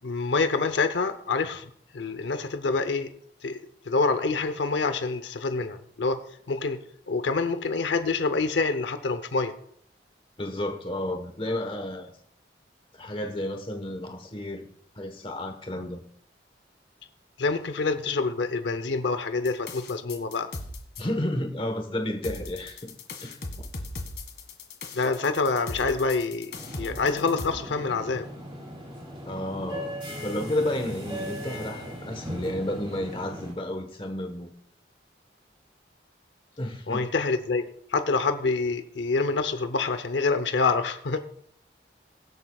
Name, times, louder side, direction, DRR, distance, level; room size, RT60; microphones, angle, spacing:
voice 1, 0.0-1.7 1.9-3.1 3.4-3.6 3.8-6.2 6.5-6.8 7.1-9.5 17.4-20.5 24.9-26.5 26.8-28.3 36.9-37.6 37.9-41.2, left 4 dB, 80° left, 9 dB, 0.7 m, -26 dB
voice 2, 10.4-12.1 12.9-14.7 14.9-16.0 21.0-22.9 23.2-23.4 29.3-34.5 36.6-37.1, left 1 dB, 30° left, 5 dB, 1.2 m, -31 dB
sound 1, 19.5-21.0 22.2-27.5, left 2 dB, 60° left, 1.8 m, -38 dB
sound 2, 26.5-33.5, equal, 30° right, 3.4 m, -38 dB
23.0 x 7.8 x 2.4 m, 0.65 s
head